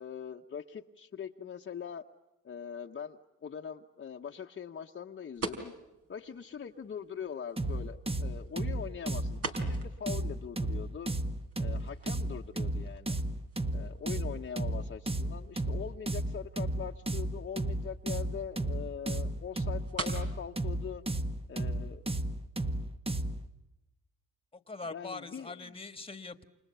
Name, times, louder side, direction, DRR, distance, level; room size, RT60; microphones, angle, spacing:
voice 1, 0.0-2.0 2.4-5.7 6.1-11.1 11.6-13.2 13.7-21.0 21.5-22.0 24.9-25.7, left 7 dB, 40° left, 2 dB, 1.2 m, -42 dB
sound 1, 5.4-22.3, right 3 dB, 50° right, 4.3 m, -47 dB
sound 2, 7.6-23.5, right 1 dB, 20° right, 1.5 m, -34 dB
voice 2, 24.5-26.4, left 3 dB, 20° left, 10 dB, 1.8 m, -42 dB
29.0 x 28.0 x 6.9 m, 0.99 s
cardioid pair, 90°, 30 cm